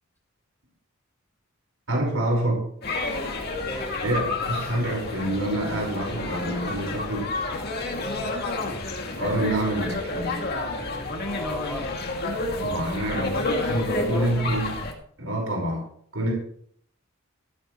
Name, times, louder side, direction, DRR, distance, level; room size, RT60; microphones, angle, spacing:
voice 1, 1.9-2.7 4.0-7.3 9.2-10.4 12.6-14.7 15.2-15.8 16.1-16.3, right 1 dB, 85° right, 0 dB, 5.0 m, -27 dB
sound 1, 2.8-14.9, left 2 dB, 50° left, 2.3 m, -30 dB
voice 2, 3.6-4.0 8.0-8.3 11.2-11.9 13.2-14.5, left 1 dB, 10° left, -4 dB, 3.0 m, -37 dB
14.0 x 13.0 x 3.1 m, 0.62 s
head